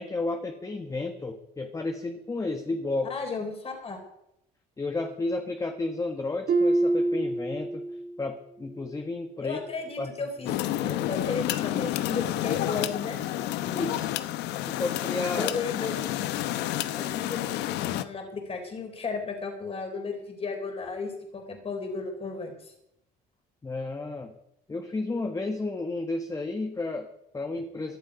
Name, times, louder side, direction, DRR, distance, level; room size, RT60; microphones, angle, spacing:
voice 1, 0.0-3.2 4.8-7.9 8.2-9.6 10.0-10.1 10.4-10.6 13.6-14.1 14.6-15.5 23.6-24.3 24.7-28.0, left 2 dB, 20° left, 5 dB, 1.5 m, -32 dB
voice 2, 3.1-4.0 9.4-10.5 10.8-13.2 15.4-16.3 16.9-17.4 17.8-22.7, left 4 dB, 35° left, 4 dB, 4.0 m, -34 dB
Harp, 6.5-8.2 8.6-9.0 9.6-9.7, right 2 dB, 55° right, 2.0 m, -26 dB
sound 1, 10.5-18.0, left 14 dB, 90° left, 0.9 m, -30 dB
18.0 x 11.5 x 5.1 m, 0.78 s
cardioid pair, 110°, 17 cm